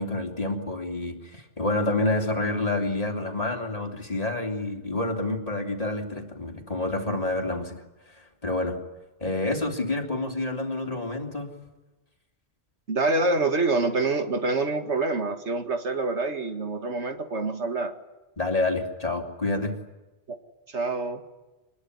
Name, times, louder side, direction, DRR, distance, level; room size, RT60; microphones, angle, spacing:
voice 1, 0.0-7.8 8.4-8.8 9.2-11.5 18.4-19.7, left 2 dB, 30° left, 2 dB, 3.3 m, -28 dB
voice 2, 12.9-17.9 20.3-20.4 20.7-21.2, right 3 dB, 75° right, 6 dB, 2.3 m, -26 dB
25.5 x 21.0 x 9.7 m, 1.1 s
omnidirectional pair, 1.2 m